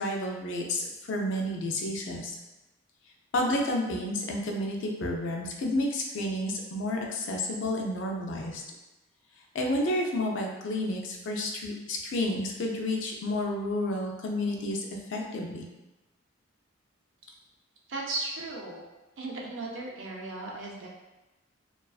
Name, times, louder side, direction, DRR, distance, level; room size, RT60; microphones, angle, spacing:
voice 1, 0.0-2.3 3.3-8.6 9.5-14.8 15.1-15.6, left 1 dB, 65° left, 0 dB, 0.4 m, -30 dB
voice 2, 17.9-18.8 19.2-20.9, right 2 dB, 65° right, -2 dB, 0.5 m, -36 dB
2.3 x 2.3 x 2.3 m, 1.0 s
head